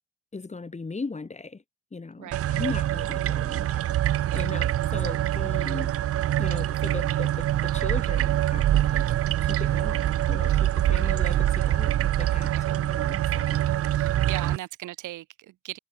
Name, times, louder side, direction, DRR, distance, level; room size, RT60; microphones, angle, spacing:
voice 1, 0.3-1.6 1.9-5.9 6.4-9.1 9.4-13.6 14.0-14.5, left 4 dB, 25° left, 2.1 m, -38 dB
voice 2, 2.2-2.5 4.2-4.5 10.7-11.1 12.5-12.8 13.3-13.6 13.9-15.8, right 15 dB, 80° right, 1.2 m, -40 dB
sound 1, 2.3-14.6, right 13 dB, 50° right, 0.5 m, -25 dB
cardioid pair, 90°, 30 cm